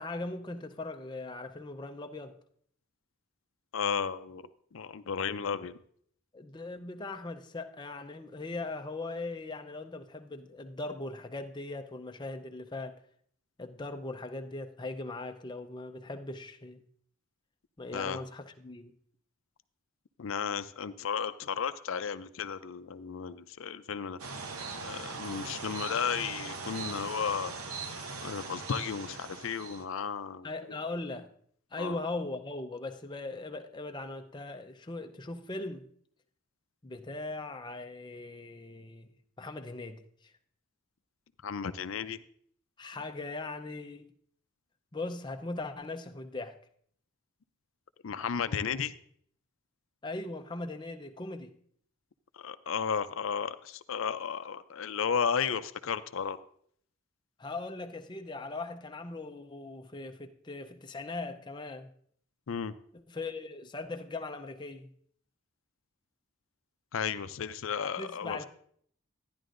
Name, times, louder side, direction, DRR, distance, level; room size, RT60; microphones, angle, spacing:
voice 1, 0.0-2.4 6.3-13.0 13.6-16.8 17.8-18.9 30.4-31.3 31.7-35.9 36.8-40.3 42.8-44.1 44.9-46.6 50.0-51.5 57.4-61.9 62.9-64.9 68.0-68.5, left 2 dB, 20° left, 0.5 m, -39 dB
voice 2, 3.7-4.4 4.7-5.8 17.9-18.2 20.2-24.2 24.9-27.5 28.2-30.5 31.8-32.0 41.4-42.2 48.0-48.9 52.4-56.4 62.5-62.7 66.9-68.5, left 6 dB, 70° left, 0.5 m, -33 dB
sound 1, 24.2-29.8, right 4 dB, 90° right, 0.9 m, -40 dB
12.5 x 10.5 x 2.5 m
head